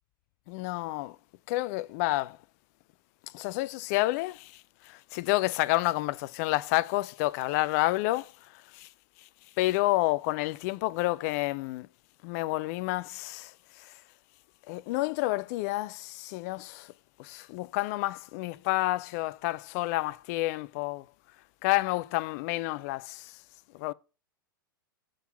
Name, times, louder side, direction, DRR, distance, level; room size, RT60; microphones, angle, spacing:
voice 1, 0.5-1.2 1.5-2.4 3.3-8.9 9.6-11.9 12.2-13.9 14.7-16.9 17.2-21.1 21.6-23.4 23.7-23.9, left 19 dB, 45° left, 0.5 m, -29 dB
6.4 x 5.6 x 6.8 m
figure-of-eight pair, 95°, 12 cm